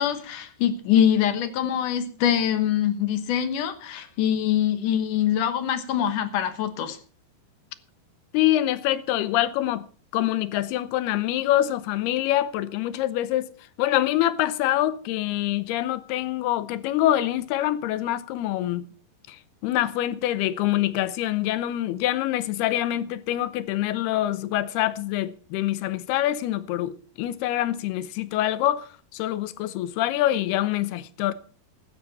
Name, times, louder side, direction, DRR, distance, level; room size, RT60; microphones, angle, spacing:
voice 1, 0.0-7.0, left 9 dB, 65° left, 2.4 m, -24 dB
voice 2, 8.3-9.9 10.1-13.5 13.8-18.8 19.3-31.3, left 14 dB, 80° left, 2.7 m, -25 dB
15.5 x 12.0 x 4.2 m
omnidirectional pair, 4.7 m